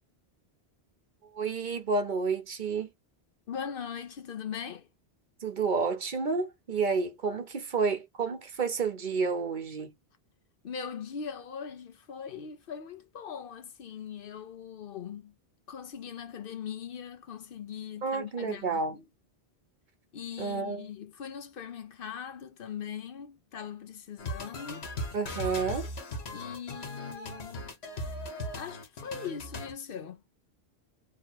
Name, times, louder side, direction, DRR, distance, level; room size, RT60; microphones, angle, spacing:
voice 1, 1.3-2.9 5.4-9.9 18.0-19.0 20.4-20.9 25.1-25.9, right 4 dB, 50° right, 0.8 m, -30 dB
voice 2, 3.5-4.9 10.6-15.3 15.7-19.0 20.1-24.9 26.3-27.7 28.5-30.2, left 7 dB, 65° left, 0.8 m, -40 dB
sound 1, 24.2-29.7, left 1 dB, 85° left, 1.4 m, -38 dB
3.0 x 2.9 x 4.3 m
omnidirectional pair, 1.1 m